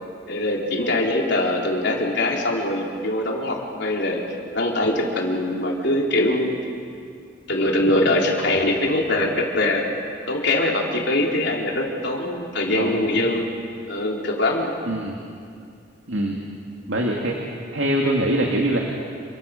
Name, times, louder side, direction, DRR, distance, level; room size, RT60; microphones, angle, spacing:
voice 1, 0.3-4.2 4.5-6.5 7.5-9.8 10.3-13.5 13.9-14.7, left 1 dB, 65° left, -1 dB, 4.0 m, -22 dB
voice 2, 12.7-13.0 14.9-15.2 16.1-16.4 16.9-17.4 17.7-18.8, right 1 dB, 70° right, 0 dB, 2.4 m, -23 dB
28.0 x 25.0 x 6.7 m, 2.4 s
head